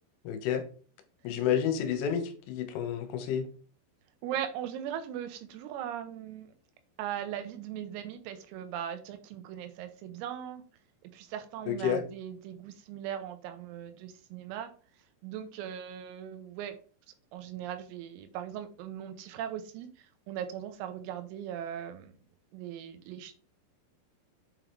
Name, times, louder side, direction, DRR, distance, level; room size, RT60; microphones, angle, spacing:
voice 1, 0.3-0.6 1.3-3.5 11.7-12.0, left 8 dB, 75° left, 7 dB, 3.4 m, -30 dB
voice 2, 4.2-6.5 7.0-10.6 11.0-14.7 15.2-16.8 17.3-22.1 22.5-23.4, right 10 dB, 90° right, 8 dB, 3.7 m, -39 dB
8.3 x 4.0 x 4.6 m, 0.39 s
omnidirectional pair, 5.9 m